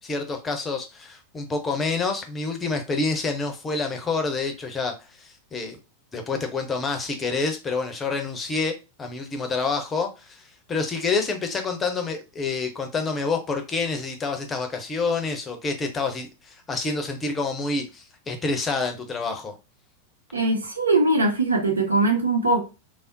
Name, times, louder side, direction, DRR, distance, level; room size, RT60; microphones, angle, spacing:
voice 1, 0.0-5.8 6.1-10.4 10.7-19.5, left 4 dB, 20° left, 0.6 m, -28 dB
voice 2, 20.3-22.7, right 2 dB, 75° right, 0.6 m, -21 dB
3.4 x 2.0 x 2.6 m
figure-of-eight pair, 90°, 0 cm